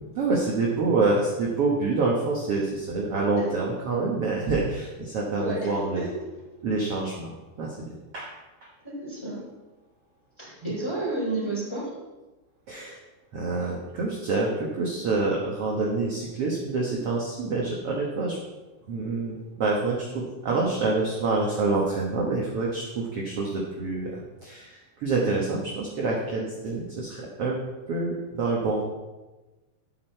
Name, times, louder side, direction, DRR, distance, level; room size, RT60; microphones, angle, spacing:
voice 1, 0.1-6.1 6.6-7.3 7.6-8.3 10.6-10.7 12.7-13.0 13.3-18.4 18.9-27.6 27.9-28.8, right 3 dB, 70° right, -3 dB, 1.4 m, -27 dB
voice 2, 5.4-6.1 8.8-9.4 10.4-11.9, right 2 dB, 10° left, -5 dB, 2.5 m, -31 dB
11.0 x 8.5 x 4.5 m, 1.1 s
omnidirectional pair, 4.7 m